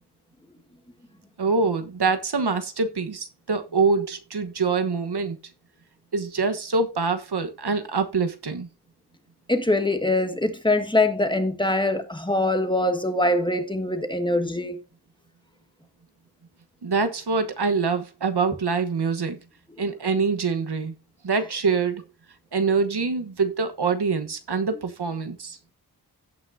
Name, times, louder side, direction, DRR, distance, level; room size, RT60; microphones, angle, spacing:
voice 1, 1.4-5.4 6.1-8.7 16.8-19.4 19.8-20.9 21.2-22.0 22.5-25.6, right 4 dB, 75° right, 1.2 m, -25 dB
voice 2, 9.5-14.8, left 2 dB, 10° left, 1.7 m, -23 dB
16.5 x 5.9 x 2.7 m
wide cardioid pair, 55°, 40 cm